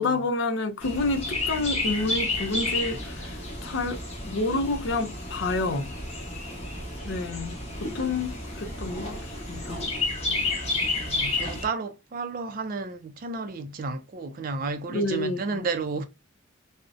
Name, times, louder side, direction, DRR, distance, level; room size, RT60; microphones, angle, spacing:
voice 1, 0.0-4.0 4.2-5.9 7.0-7.6 7.9-9.8 14.9-15.7, left 2 dB, 60° left, 0.4 m, -29 dB
Chirp tweet, 0.8-11.6, left 2 dB, 30° left, 0.8 m, -31 dB
voice 2, 6.3-6.7 11.0-16.0, right 4 dB, 40° right, 0.3 m, -32 dB
2.6 x 2.0 x 2.4 m
head